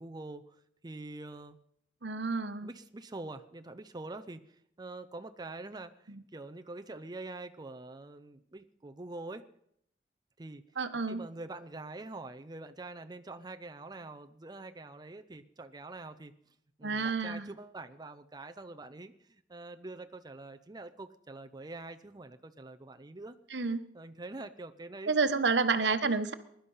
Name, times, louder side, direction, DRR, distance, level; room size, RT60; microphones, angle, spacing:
voice 1, 0.0-1.6 2.6-9.4 10.4-10.6 11.1-16.3 16.8-23.4 23.7-25.4, right 2 dB, 25° right, 8 dB, 0.6 m, -45 dB
voice 2, 2.0-2.7 6.1-6.2 10.8-11.2 16.8-17.5 23.5-23.8 25.1-26.3, right 4 dB, 75° right, 10 dB, 1.1 m, -29 dB
21.5 x 11.5 x 5.6 m, 0.73 s
head